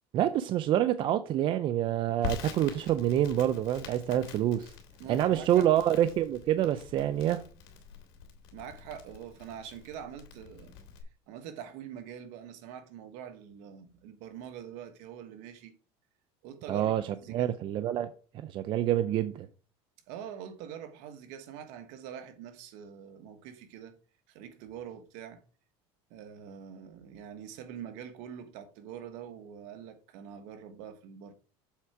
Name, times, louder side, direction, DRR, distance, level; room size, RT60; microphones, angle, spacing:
voice 1, 0.1-4.7 5.1-7.4 16.7-17.0 17.3-18.1 18.3-19.5, right 11 dB, 40° right, 0.5 m, -27 dB
Crackle, 2.2-11.0, left 7 dB, 80° left, 2.3 m, -45 dB
voice 2, 5.0-5.7 8.5-10.8 11.3-15.7 16.4-17.6 20.1-24.0 24.3-25.4 26.1-31.3, right 9 dB, 65° right, 1.3 m, -44 dB
7.3 x 4.5 x 4.9 m
cardioid pair, 140°, 13 cm